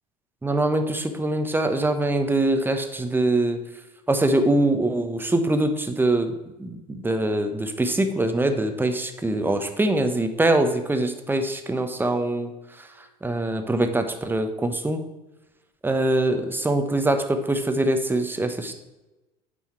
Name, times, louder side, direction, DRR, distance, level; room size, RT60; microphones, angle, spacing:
voice 1, 0.4-3.6 4.1-6.3 6.6-12.5 12.8-15.0 15.8-18.7, right 2 dB, 10° right, 7 dB, 1.0 m, -23 dB
8.7 x 5.5 x 4.5 m, 1.1 s
figure-of-eight pair, 70°, 21 cm